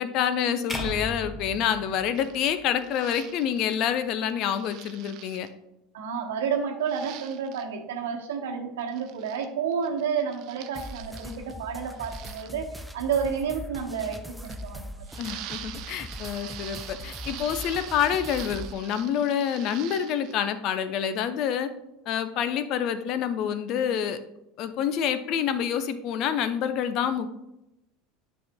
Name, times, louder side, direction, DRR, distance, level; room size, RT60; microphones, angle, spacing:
voice 1, 0.0-5.5 15.2-21.7 22.1-24.2 24.6-27.3, left 8 dB, 50° left, 11 dB, 0.6 m, -27 dB
sound 1, 0.7-3.0, equal, 15° left, 1.1 m, -36 dB
sound 2, 2.2-3.8 4.4-5.5 6.9-7.7 8.8-9.5 9.7-11.5 11.9-12.5 14.0-14.7 15.0-20.4, right 12 dB, 50° right, 0.5 m, -43 dB
voice 2, 5.9-15.1, right 6 dB, 70° right, 2 dB, 1.0 m, -30 dB
sound 3, 10.7-18.7, equal, ahead, 0.5 m, -41 dB
10.0 x 5.4 x 2.3 m, 0.88 s
figure-of-eight pair, 75°, 0 cm